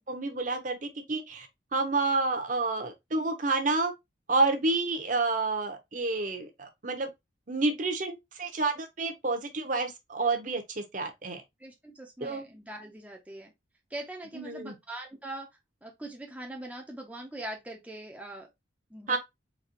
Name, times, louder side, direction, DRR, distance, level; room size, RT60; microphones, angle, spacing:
voice 1, 0.1-1.5 1.7-3.9 4.3-7.1 7.5-11.4 12.2-12.4 14.3-14.7 19.1-19.2, right 3 dB, 40° right, 0.8 m, -29 dB
voice 2, 11.6-13.5 13.9-15.5 15.8-18.5 18.9-19.2, right 1 dB, 5° right, 0.6 m, -42 dB
4.1 x 2.9 x 2.9 m
head